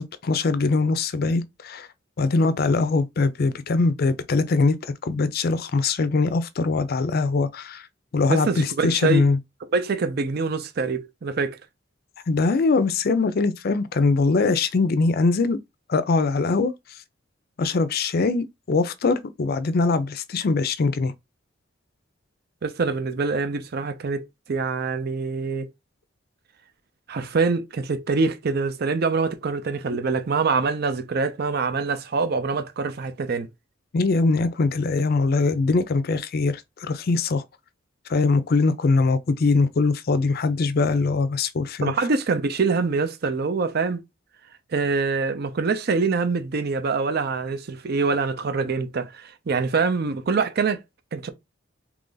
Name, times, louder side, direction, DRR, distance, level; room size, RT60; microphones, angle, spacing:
voice 1, 0.0-1.9 2.2-4.8 5.0-7.8 8.1-9.4 12.3-15.6 15.9-16.7 17.6-21.1 33.9-37.4 38.1-41.9, left 3 dB, 50° left, 0.4 m, -22 dB
voice 2, 8.3-9.2 9.7-11.6 22.6-25.7 27.1-33.5 41.8-44.0 44.7-50.8 51.1-51.3, right 4 dB, 55° right, 0.5 m, -25 dB
3.0 x 2.5 x 3.8 m
head